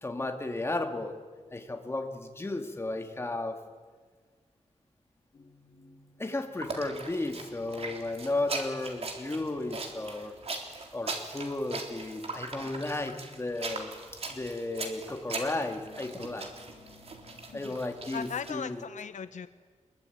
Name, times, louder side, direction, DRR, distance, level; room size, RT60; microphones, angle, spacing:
voice 1, 0.0-1.2 1.5-3.6 6.2-10.3 10.9-13.9 14.3-16.5 17.5-18.8, left 2 dB, 20° left, 4 dB, 2.3 m, -34 dB
sound 1, 5.3-10.5 11.3-11.6 12.8-12.9 13.6-13.7 14.4-14.8 15.1-18.4, left 2 dB, 50° left, 3.6 m, -58 dB
sound 2, 6.5-18.5, right 3 dB, 55° right, 3.6 m, -40 dB
voice 2, 18.1-19.5, left 6 dB, 80° left, 11 dB, 1.0 m, -38 dB
24.5 x 22.0 x 9.4 m, 1.5 s
wide cardioid pair, 145°, 12 cm